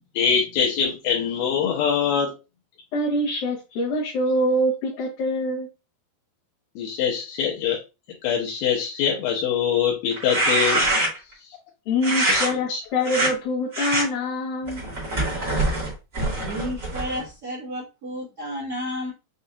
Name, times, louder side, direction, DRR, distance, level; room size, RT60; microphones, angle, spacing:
voice 1, 0.2-2.3 6.8-7.8 8.2-10.9 12.3-12.4 12.7-12.8, left 7 dB, 85° left, -2 dB, 2.6 m, -23 dB
voice 2, 2.9-5.7 11.9-14.8, left 1 dB, 65° left, -6 dB, 2.3 m, -24 dB
sound 1, 10.1-11.3 12.0-12.5 13.0-13.3 13.7-14.0 14.7-17.2, right 2 dB, 30° right, 1.5 m, -24 dB
voice 3, 16.4-19.1, equal, 75° right, -7 dB, 0.8 m, -32 dB
6.5 x 2.7 x 2.3 m, 0.28 s
omnidirectional pair, 4.1 m